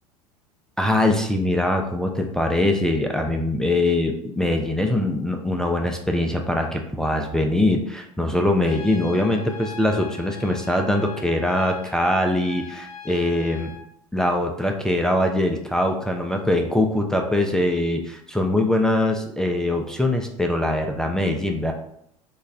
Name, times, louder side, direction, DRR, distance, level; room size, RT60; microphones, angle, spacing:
voice 1, 0.8-13.7 14.1-21.7, left 1 dB, 5° left, 2 dB, 0.4 m, -22 dB
Trumpet, 8.6-13.9, left 6 dB, 80° left, 0.5 m, -40 dB
3.0 x 2.2 x 3.7 m, 0.73 s
figure-of-eight pair, 80°, 18 cm